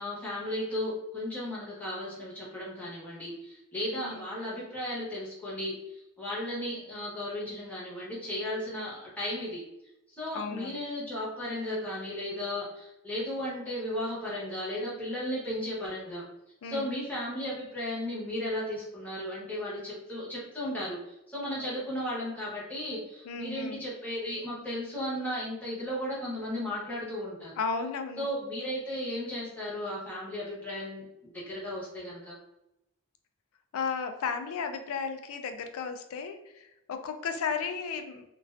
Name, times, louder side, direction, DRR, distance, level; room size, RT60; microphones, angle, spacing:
voice 1, 0.0-9.6 10.1-16.2 16.6-21.0 21.3-27.6 28.2-32.4, left 1 dB, 5° left, -8 dB, 0.7 m, -35 dB
voice 2, 10.3-10.8 16.6-16.9 21.6-21.8 23.3-23.8 27.6-28.3 33.7-38.2, left 5 dB, 70° left, 7 dB, 0.3 m, -34 dB
2.4 x 2.2 x 2.4 m, 0.89 s
head